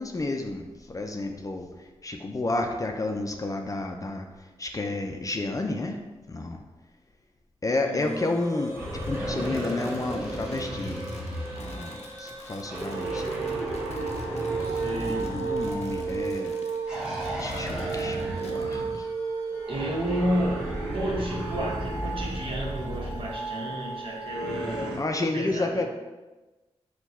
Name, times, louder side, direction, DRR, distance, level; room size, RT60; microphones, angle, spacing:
voice 1, 0.0-6.6 7.6-11.1 11.6-13.3 15.0-16.6 17.4-19.1 25.0-25.8, left 2 dB, 30° left, 3 dB, 0.4 m, -31 dB
voice 2, 7.8-8.3 14.4-15.2 19.7-20.7 20.9-25.0 25.3-25.8, equal, 55° right, -4 dB, 1.2 m, -31 dB
sound 1, 8.0-25.0, right 4 dB, 25° right, 1.0 m, -35 dB
Crumpling crinkling, 8.7-18.7, left 3 dB, 80° left, 0.6 m, -51 dB
sound 2, 8.7-12.0 12.7-16.4 16.8-19.1 19.7-23.4 24.3-25.0, right 1 dB, 5° right, 1.3 m, -34 dB
4.5 x 2.3 x 4.1 m, 1.2 s
cardioid pair, 60°, 11 cm